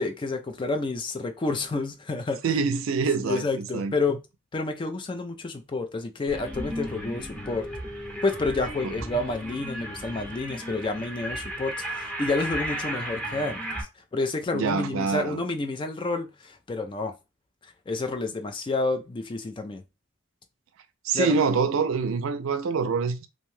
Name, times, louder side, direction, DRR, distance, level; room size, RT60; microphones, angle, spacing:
voice 1, 0.0-2.4 3.2-4.2 4.5-7.7 8.2-17.1 17.6-19.8 21.1-21.4, left 3 dB, 25° left, 0.3 m, -29 dB
voice 2, 2.4-3.9 8.8-8.9 14.5-15.4 21.0-23.3, right 5 dB, 75° right, 0.4 m, -25 dB
sound 1, 6.3-13.8, right 1 dB, 5° left, 0.8 m, -35 dB
2.6 x 2.2 x 3.1 m
head